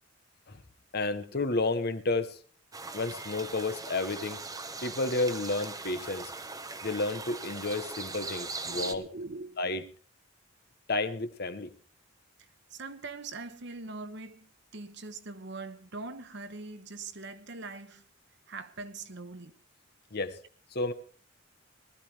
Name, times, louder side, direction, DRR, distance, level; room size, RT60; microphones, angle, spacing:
voice 1, 0.9-2.4 2.9-4.4 4.8-6.3 6.8-9.0 9.6-9.8 10.9-11.7 20.1-20.4 20.7-20.9, left 2 dB, 50° left, 1.1 m, -31 dB
sound 1, 2.7-8.9, right 3 dB, 15° right, 0.9 m, -40 dB
voice 2, 8.7-9.6 12.7-18.0 18.5-19.5, right 3 dB, 55° right, 1.2 m, -42 dB
19.5 x 14.0 x 3.4 m
head